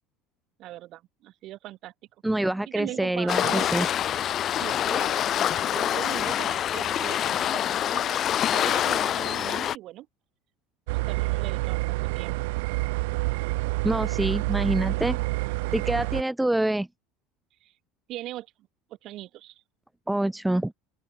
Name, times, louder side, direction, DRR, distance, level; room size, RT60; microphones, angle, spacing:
voice 1, 0.6-1.9 2.7-3.7 4.6-7.6 7.9-10.1 11.1-12.5 17.6-17.7 18.1-18.5 19.0-19.6, right 15 dB, 50° right, 7.5 m, -40 dB
voice 2, 2.2-3.9 13.8-15.2 15.7-16.9 20.1-20.7, right 1 dB, 5° right, 2.4 m, -26 dB
Waves surf, 3.3-9.8, left 10 dB, 40° left, 4.7 m, -26 dB
sound 1, 10.9-16.2, right 25 dB, 85° right, 7.9 m, -28 dB
open air
supercardioid pair, 135°, 0 cm